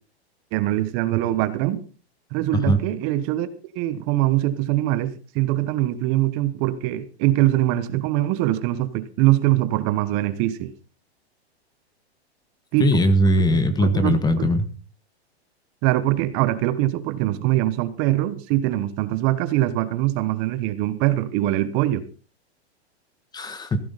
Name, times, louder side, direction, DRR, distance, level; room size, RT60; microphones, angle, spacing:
voice 1, 0.5-1.8 2.3-3.5 3.7-10.7 12.7-13.0 13.8-14.5 15.8-22.0, right 15 dB, 35° right, 1.2 m, -23 dB
voice 2, 12.8-14.6 23.3-23.8, equal, 10° left, 1.4 m, -20 dB
15.5 x 14.0 x 4.1 m
hypercardioid pair, 140°, 33 cm